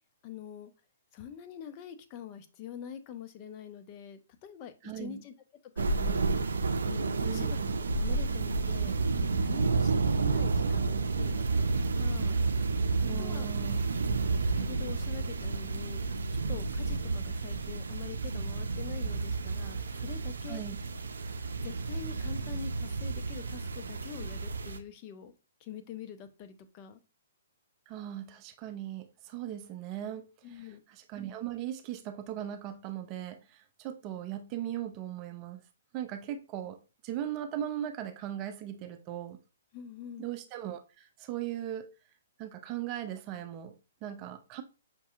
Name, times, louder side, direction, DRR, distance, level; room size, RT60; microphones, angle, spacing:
voice 1, 0.2-0.7 1.1-5.3 5.8-6.3 6.8-7.5 7.9-9.0 9.4-11.7 12.0-12.4 13.2-13.5 14.2-16.0 16.3-20.6 21.6-25.3 25.6-27.0 30.4-30.8 39.7-40.3, left 8 dB, 35° left, 0.6 m, -45 dB
voice 2, 4.8-5.2 7.2-7.5 13.0-13.8 20.5-20.8 27.9-35.6 35.9-39.4 40.2-41.9 42.4-44.6, right 11 dB, 30° right, 0.5 m, -39 dB
sound 1, 5.8-24.8, right 4 dB, 85° right, 0.5 m, -31 dB
5.9 x 2.7 x 2.4 m
hypercardioid pair, 140°, 0 cm